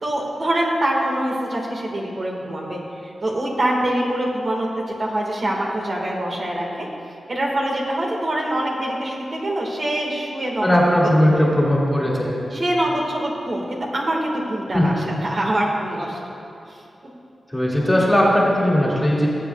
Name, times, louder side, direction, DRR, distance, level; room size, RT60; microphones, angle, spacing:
voice 1, 0.0-2.8 3.2-6.9 7.3-10.7 11.2-11.5 12.5-16.2 16.7-16.8, right 1 dB, 50° right, -2 dB, 1.6 m, -24 dB
voice 2, 10.6-12.3 14.7-14.9 17.5-19.3, equal, 10° left, -4 dB, 2.0 m, -18 dB
20.0 x 8.2 x 2.3 m, 2.7 s
wide cardioid pair, 100°, 0 cm